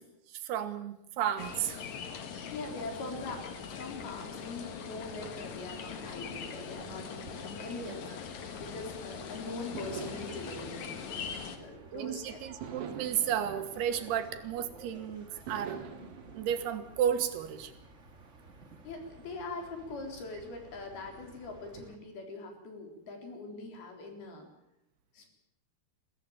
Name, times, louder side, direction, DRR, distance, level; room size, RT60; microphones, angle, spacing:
voice 1, 0.3-1.8 7.6-8.0 11.9-15.8 16.4-17.7, right 9 dB, 85° right, 8 dB, 3.5 m, -33 dB
sound 1, 1.4-11.6, left 7 dB, 55° left, 2.5 m, -42 dB
sound 2, 2.3-21.9, right 2 dB, 30° right, 1.3 m, -54 dB
voice 2, 2.5-12.4 18.8-24.5 25.1-25.3, left 3 dB, 75° left, 3 dB, 5.7 m, -42 dB
sound 3, 9.7-12.0 12.6-14.9 15.5-17.3, right 7 dB, 60° right, 3.1 m, -46 dB
22.0 x 16.0 x 8.7 m, 0.83 s
omnidirectional pair, 4.5 m